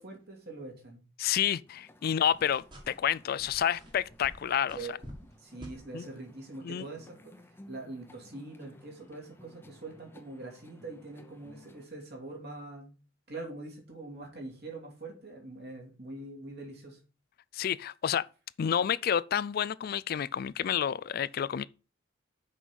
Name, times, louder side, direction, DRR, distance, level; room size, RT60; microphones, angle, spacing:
voice 1, 0.0-1.0 4.7-5.0 5.4-7.3 7.7-12.9 13.3-17.0, right 2 dB, 55° right, 2.9 m, -43 dB
voice 2, 1.2-5.0 5.9-6.0 6.6-6.8 17.5-18.2 18.6-21.6, left 9 dB, 50° left, 0.3 m, -29 dB
sound 1, 1.7-11.9, left 1 dB, 10° left, 0.8 m, -57 dB
sound 2, 2.2-3.1 3.4-5.3 5.6-5.8, equal, 25° right, 1.8 m, -48 dB
6.2 x 5.3 x 6.2 m
head